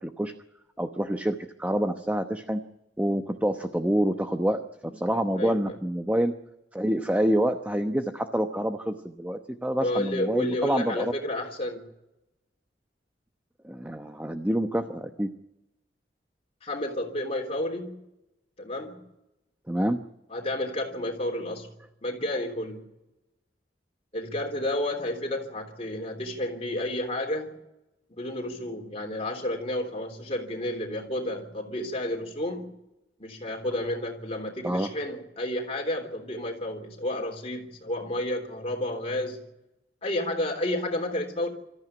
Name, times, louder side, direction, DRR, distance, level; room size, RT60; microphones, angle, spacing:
voice 1, 0.0-0.3 0.8-2.6 3.0-6.3 6.7-11.1 13.6-15.3 19.7-20.0 34.6-34.9, right 1 dB, 10° right, 0.9 m, -27 dB
voice 2, 5.4-5.8 9.8-11.9 16.6-18.0 18.6-19.0 20.3-21.7 22.0-22.8 24.1-27.6 28.1-32.8 33.2-39.4 40.0-41.5, left 1 dB, 35° left, 3.5 m, -31 dB
24.0 x 14.0 x 9.8 m
head